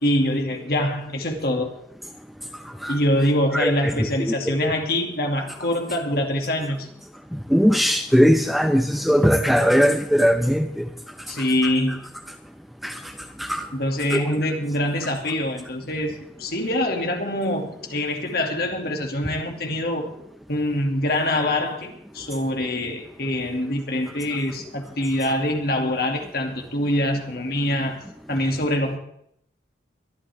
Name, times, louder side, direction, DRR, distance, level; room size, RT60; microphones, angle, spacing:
voice 1, 0.0-1.7 2.9-6.9 11.3-12.0 13.7-20.1 20.5-28.0 28.3-29.0, left 1 dB, 55° left, 2 dB, 2.5 m, -24 dB
voice 2, 2.6-3.0 3.5-4.7 7.3-10.9 11.4-11.7 12.8-13.1 13.4-13.7 14.1-14.2, equal, ahead, 6 dB, 0.7 m, -20 dB
22.5 x 11.5 x 3.6 m, 0.72 s
head